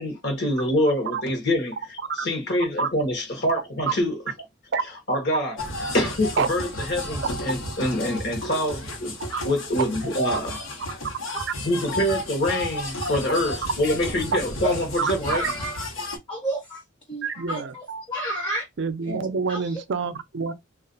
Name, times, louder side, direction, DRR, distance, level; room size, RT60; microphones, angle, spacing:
voice 1, 0.0-4.2 5.1-5.6 5.9-9.2 9.4-10.6 11.6-15.4 19.1-19.3, left 1 dB, 55° left, 0.9 m, -25 dB
sound 1, 5.6-16.2, left 1 dB, 80° left, 0.9 m, -33 dB
voice 2, 15.2-15.9 16.3-16.8 17.1-18.7 19.5-19.7, right 1 dB, 20° left, 0.6 m, -30 dB
voice 3, 17.2-18.0 18.8-20.5, right 5 dB, 60° right, 0.4 m, -27 dB
2.4 x 2.2 x 3.8 m
head